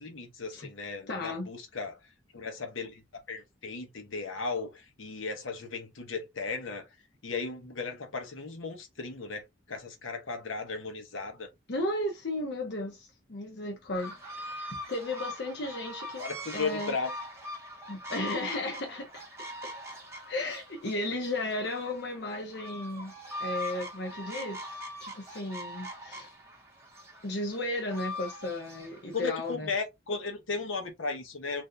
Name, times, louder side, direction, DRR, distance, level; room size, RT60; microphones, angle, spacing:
voice 1, 0.0-2.0 2.3-3.0 3.3-6.9 7.2-11.5 16.2-17.1 29.1-31.6, left 4 dB, 85° left, 1.0 m, -36 dB
voice 2, 1.1-1.5 11.7-16.3 16.5-17.0 17.9-19.2 19.9-20.0 20.3-23.1 23.4-24.7 25.0-26.3 27.2-29.7, left 1 dB, 55° left, 0.9 m, -34 dB
sound 1, 13.9-29.5, equal, 15° right, 0.8 m, -42 dB
3.4 x 2.6 x 2.6 m
head